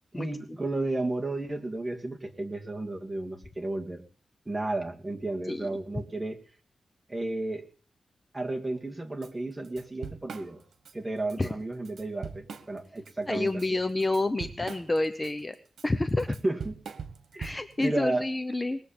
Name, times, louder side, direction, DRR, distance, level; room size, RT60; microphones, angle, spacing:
voice 1, 0.1-4.0 4.5-6.4 7.1-7.6 8.3-10.6 10.9-13.8 16.4-16.7 17.3-17.4 17.8-18.3, right 2 dB, 15° right, 1 dB, 2.1 m, -32 dB
voice 2, 5.5-5.8 11.4-11.5 13.3-15.5 15.8-16.4 17.4-18.8, left 2 dB, 20° left, 9 dB, 0.8 m, -28 dB
Drum kit / Drum, 9.2-9.3 9.6-10.9 11.3-11.5 11.8-13.1 13.5-17.9, right 6 dB, 80° right, 1.5 m, -42 dB
20.0 x 7.5 x 8.6 m, 0.43 s
wide cardioid pair, 130°, 0 cm